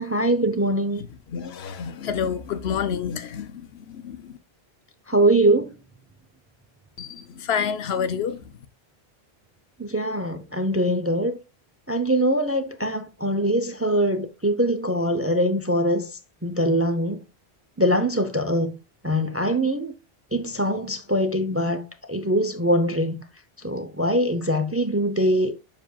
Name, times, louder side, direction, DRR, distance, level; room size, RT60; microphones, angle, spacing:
voice 1, 0.0-1.0 5.1-5.7 9.8-11.4 11.9-16.1 16.4-17.2 17.8-18.7 19.0-19.9 20.3-23.2 23.6-25.6, right 1 dB, 20° right, 0.4 m, -23 dB
voice 2, 1.0-4.3 7.0-8.4, left 7 dB, 80° left, 1.0 m, -29 dB
7.4 x 6.1 x 2.2 m
omnidirectional pair, 1.1 m